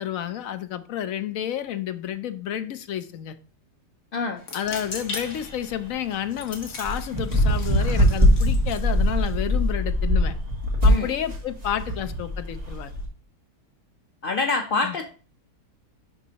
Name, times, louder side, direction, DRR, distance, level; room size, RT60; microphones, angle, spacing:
voice 1, 0.0-3.3 4.5-10.3 10.8-13.0 14.8-14.9, left 10 dB, 65° left, 0.9 m, -30 dB
voice 2, 4.1-4.5 10.9-11.1 14.2-15.0, left 3 dB, 85° left, 0.4 m, -26 dB
sound 1, 4.4-9.7, left 3 dB, 50° left, 1.6 m, -40 dB
sound 2, 4.6-13.1, equal, 25° right, 2.5 m, -22 dB
11.5 x 4.1 x 2.8 m
omnidirectional pair, 1.8 m